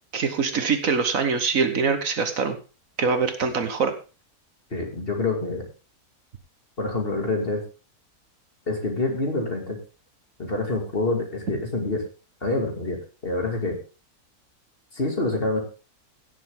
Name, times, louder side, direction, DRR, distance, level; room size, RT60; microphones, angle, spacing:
voice 1, 0.1-2.6 3.0-3.9, right 5 dB, 60° right, 8 dB, 1.5 m, -23 dB
voice 2, 4.7-5.6 6.8-7.6 8.7-9.8 10.4-12.0 12.4-13.0 13.2-13.8 14.9-15.6, left 2 dB, 35° left, 2 dB, 2.6 m, -26 dB
16.5 x 7.2 x 3.6 m, 0.33 s
omnidirectional pair, 1.6 m